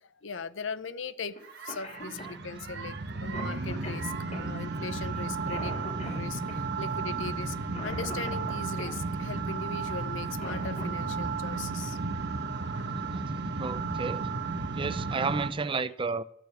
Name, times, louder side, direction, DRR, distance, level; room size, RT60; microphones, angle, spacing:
voice 1, 0.0-1.3 1.6-3.0 3.2-5.7 6.0-7.6 7.8-12.0, left 5 dB, 85° left, 0.8 m, -39 dB
Cough, 1.4-1.5 1.7-9.0 10.1-11.2 12.8-12.9 13.9-14.2 14.7-14.8 15.2-15.6, left 1 dB, 40° left, 2.5 m, -44 dB
sound 1, 1.4-15.5, right 4 dB, 60° right, 1.2 m, -33 dB
voice 2, 12.9-14.3 14.7-16.2, right 4 dB, 25° right, 0.5 m, -33 dB
12.5 x 6.9 x 8.3 m
head